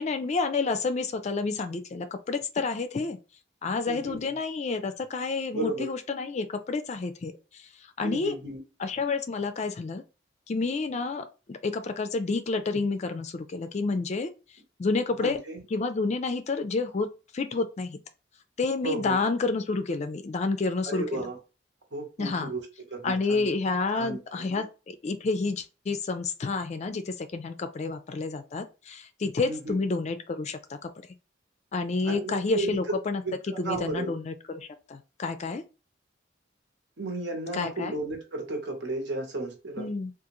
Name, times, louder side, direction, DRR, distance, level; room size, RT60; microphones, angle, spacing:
voice 1, 0.0-3.2 3.6-7.7 8.0-8.4 8.8-10.0 10.5-14.3 14.8-15.4 15.7-18.0 18.6-21.3 22.2-22.5 23.0-30.9 31.7-33.2 33.6-35.6 37.5-38.0 39.8-40.1, left 3 dB, 35° left, 0.4 m, -29 dB
voice 2, 3.9-4.4 5.5-5.9 8.0-8.6 15.2-15.6 18.8-19.2 20.8-21.4 21.9-22.6 22.9-23.5 23.9-24.6 29.4-29.8 32.0-33.0 33.2-34.1 37.0-39.9, right 2 dB, 65° right, 1.1 m, -34 dB
3.6 x 2.5 x 3.0 m
head